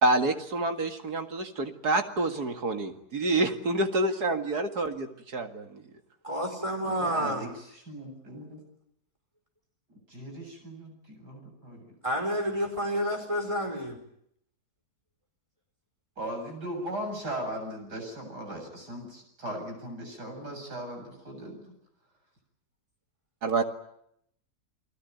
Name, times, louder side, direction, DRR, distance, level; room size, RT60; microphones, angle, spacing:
voice 1, 0.0-5.8 23.4-23.6, right 2 dB, 70° right, 6 dB, 2.6 m, -28 dB
voice 2, 6.2-7.5 12.0-14.0, equal, 20° right, 4 dB, 5.3 m, -29 dB
voice 3, 6.8-8.6 9.9-11.9 16.2-21.6, right 1 dB, 90° right, 3 dB, 8.6 m, -38 dB
29.5 x 20.0 x 9.3 m, 0.76 s
omnidirectional pair, 1.7 m